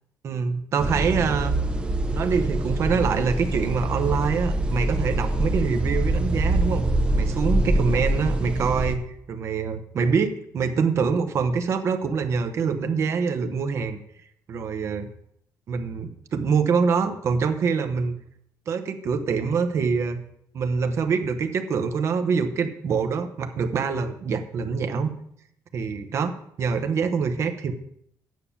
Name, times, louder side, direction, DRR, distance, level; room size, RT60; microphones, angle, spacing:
voice 1, 0.2-1.5 2.1-6.9 7.1-9.0 9.3-14.0 14.5-15.1 15.7-18.2 18.7-20.2 20.5-25.1 25.7-26.3 26.6-27.7, right 5 dB, 40° right, 8 dB, 1.0 m, -25 dB
sound 1, 0.8-9.0, right 1 dB, 15° right, 0.7 m, -24 dB
9.3 x 6.7 x 7.1 m, 0.72 s
cardioid pair, 180°, 7 cm